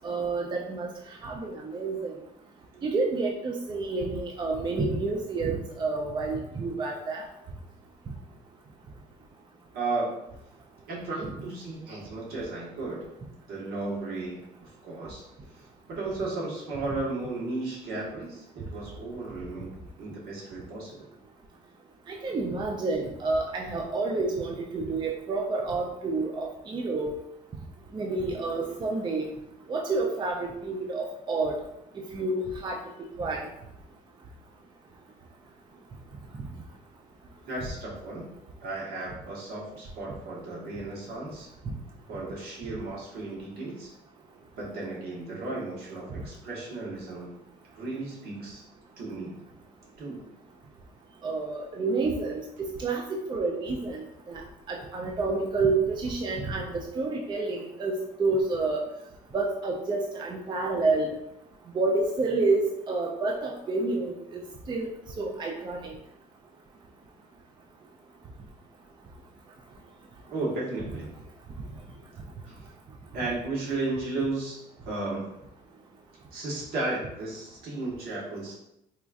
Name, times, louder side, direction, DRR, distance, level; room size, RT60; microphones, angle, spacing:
voice 1, 0.0-0.9 1.2-2.1 2.8-7.2 22.1-27.1 27.9-29.3 29.7-31.6 32.1-32.8 33.2-33.4 51.2-54.0 54.3-54.4 54.7-58.8 59.3-61.1 61.7-64.4 64.7-64.9 65.2-65.8, right 3 dB, 25° right, 0 dB, 0.4 m, -29 dB
voice 2, 9.7-10.1 10.9-13.1 13.5-15.2 15.5-19.7 20.0-21.1 37.5-38.3 38.6-41.5 42.1-43.9 44.6-47.3 47.7-48.6 49.0-49.4 50.0-50.2 70.3-71.1 72.4-72.6 73.1-75.3 76.3-78.5, right 2 dB, 65° right, -5 dB, 1.4 m, -34 dB
4.2 x 2.4 x 2.4 m, 0.83 s
cardioid pair, 110°, 17 cm